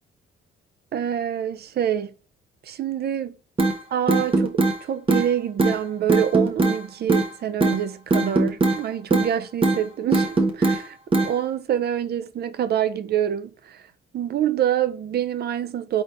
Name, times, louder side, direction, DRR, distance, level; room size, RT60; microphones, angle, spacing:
voice 1, 0.9-2.1 2.6-3.3 3.9-11.0 11.2-13.8 14.1-16.0, right 10 dB, 55° right, 0.5 m, -26 dB
sound 1, 3.6-3.7 4.1-4.8 5.1-5.3 5.6-5.8 6.1-6.8 7.1-7.3 7.6-7.8 8.1-8.8 9.1-9.3 9.6-9.8 10.1-10.8 11.1-11.3, right 2 dB, 25° right, 0.9 m, -19 dB
4.1 x 3.3 x 3.4 m
cardioid pair, 90°, 20 cm